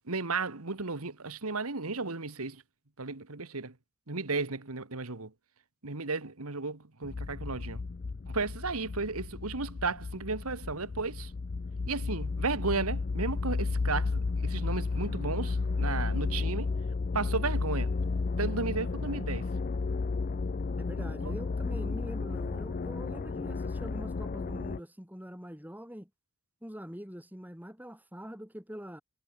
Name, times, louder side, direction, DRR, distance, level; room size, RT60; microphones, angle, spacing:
voice 1, 0.1-2.6 3.0-3.7 4.1-5.3 5.8-7.8 8.3-11.3 11.9-16.7 17.1-17.9 18.4-19.5 21.2-21.4, right 3 dB, 80° right, 1.9 m, -34 dB
sound 1, 7.0-24.8, left 4 dB, 40° left, 0.4 m, -33 dB
voice 2, 20.8-26.1 26.6-29.0, equal, 10° right, 3.0 m, -44 dB
head